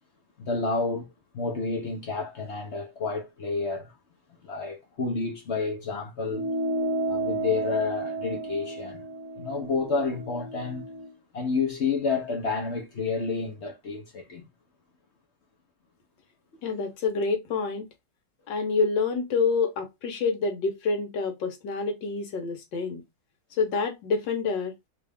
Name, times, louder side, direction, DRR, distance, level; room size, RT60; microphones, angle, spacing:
voice 1, 0.4-3.9 4.4-6.5 7.1-9.0 9.4-10.8 11.3-14.5, left 4 dB, 55° left, 0.8 m, -30 dB
sound 1, 6.3-11.1, right 2 dB, 15° right, 0.6 m, -32 dB
voice 2, 16.6-17.9 18.5-23.0 23.6-24.7, left 4 dB, 75° left, 1.6 m, -27 dB
3.4 x 2.5 x 3.3 m
omnidirectional pair, 2.0 m